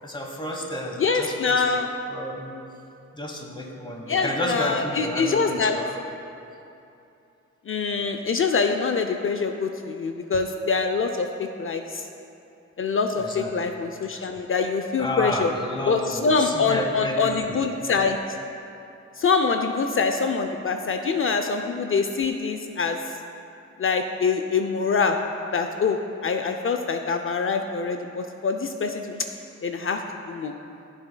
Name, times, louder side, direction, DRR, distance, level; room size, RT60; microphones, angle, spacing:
voice 1, 0.0-1.6 2.1-2.5 3.1-5.9 13.2-13.5 14.1-14.2 15.0-17.6, left 1 dB, 15° left, 1 dB, 1.2 m, -31 dB
voice 2, 1.0-1.9 4.1-5.8 7.7-12.0 12.8-15.5 15.9-18.2 19.2-23.0 23.8-25.2 25.5-29.2 29.6-30.0 30.3-30.5, left 5 dB, 45° left, 5 dB, 0.5 m, -24 dB
14.0 x 7.1 x 2.2 m, 2.7 s
cardioid pair, 85°, 29 cm